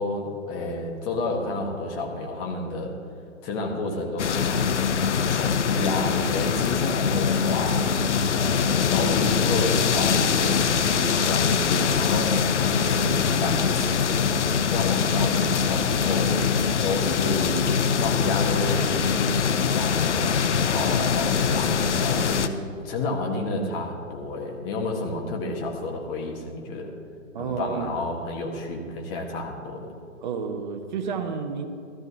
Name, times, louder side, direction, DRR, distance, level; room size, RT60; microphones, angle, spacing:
voice 1, 0.0-3.0 3.4-4.8 5.3-7.8 8.3-12.4 12.7-16.4 16.8-26.9 27.4-29.9, left 2 dB, 25° left, 1 dB, 1.5 m, -31 dB
sound 1, 4.2-22.5, left 6 dB, 65° left, 0.8 m, -23 dB
voice 2, 27.3-27.9 30.2-31.7, right 6 dB, 35° right, 5 dB, 1.2 m, -30 dB
16.0 x 13.5 x 2.8 m, 2.4 s
figure-of-eight pair, 135°, 39 cm